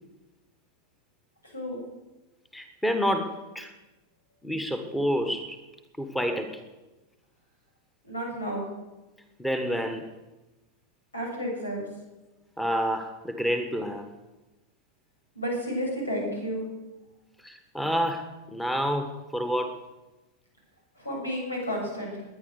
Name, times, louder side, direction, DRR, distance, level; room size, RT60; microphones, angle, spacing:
voice 1, 1.4-1.8 8.0-8.7 11.1-11.9 15.3-16.7 21.0-22.3, equal, 80° left, -1 dB, 7.7 m, -31 dB
voice 2, 2.5-3.7 4.4-5.6 6.0-6.6 9.4-10.1 12.6-14.1 17.4-19.8, equal, 5° left, 7 dB, 1.6 m, -28 dB
20.5 x 10.5 x 6.7 m, 1.1 s
figure-of-eight pair, 90°, 0 cm